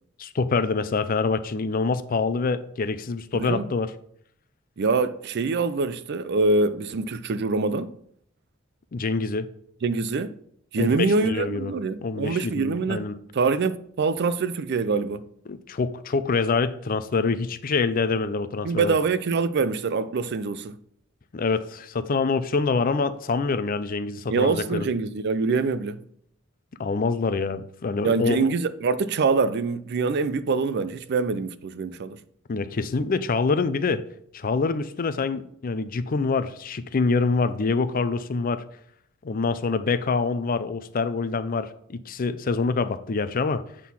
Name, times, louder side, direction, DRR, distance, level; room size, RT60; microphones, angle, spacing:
voice 1, 0.2-3.9 8.9-9.5 10.8-11.7 12.0-13.2 15.5-19.0 21.3-24.9 26.8-28.5 32.5-34.0 34.3-38.6 39.2-43.6, left 4 dB, 40° left, 0.5 m, -25 dB
voice 2, 3.3-3.7 4.8-7.9 9.8-10.4 10.7-13.1 13.3-15.3 18.6-20.8 24.3-26.0 28.0-32.2, right 4 dB, 55° right, 0.4 m, -24 dB
8.2 x 3.7 x 5.9 m
head